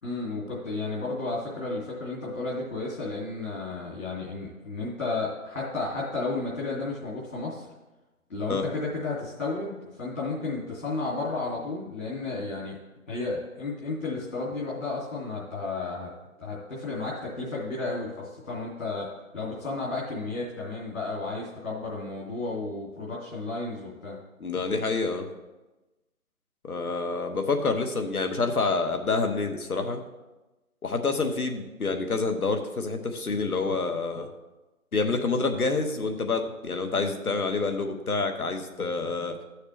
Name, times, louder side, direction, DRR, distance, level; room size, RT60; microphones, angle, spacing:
voice 1, 0.0-7.7 8.3-12.8 13.1-16.1 16.4-24.2, left 3 dB, 65° left, -6 dB, 2.6 m, -33 dB
voice 2, 24.4-25.3 26.6-30.0 30.8-34.3 34.9-39.4, left 3 dB, 80° left, 5 dB, 1.3 m, -27 dB
13.5 x 6.5 x 3.3 m, 1.1 s
figure-of-eight pair, 165°, 43 cm